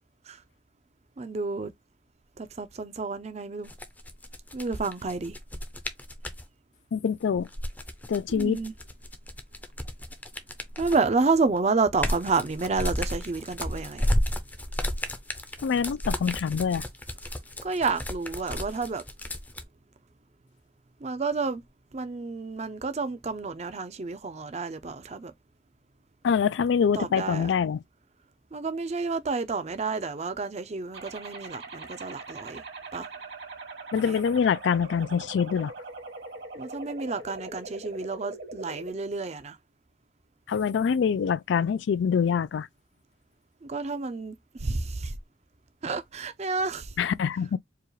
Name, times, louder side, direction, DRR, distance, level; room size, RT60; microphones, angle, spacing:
voice 1, 1.2-1.7 2.4-3.7 4.5-5.4 8.3-8.7 10.8-14.1 17.6-19.0 21.0-21.6 21.9-25.3 26.9-27.5 28.5-32.6 32.9-33.1 34.0-34.2 36.5-39.6 43.6-45.1 45.8-46.9, right 4 dB, 40° right, 0.5 m, -30 dB
sound 1, 3.6-6.4 7.4-11.1 11.6-19.6, left 1 dB, 10° left, 0.5 m, -32 dB
voice 2, 6.9-7.5 8.1-8.6 15.6-16.8 26.2-27.8 33.9-35.7 40.5-42.7 47.0-47.6, left 6 dB, 85° left, 0.3 m, -25 dB
sound 2, 30.9-38.9, right 3 dB, 70° right, 2.1 m, -41 dB
4.7 x 2.4 x 3.1 m
head